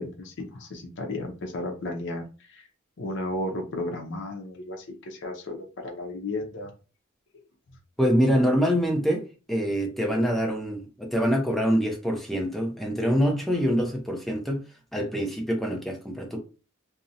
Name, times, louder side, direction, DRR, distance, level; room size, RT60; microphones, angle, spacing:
voice 1, 0.0-2.2 2.5-2.7 3.0-6.7, left 1 dB, 60° left, 0.5 m, -34 dB
voice 2, 8.0-14.6 14.9-16.4, equal, ahead, 0.5 m, -25 dB
2.5 x 2.0 x 2.6 m
head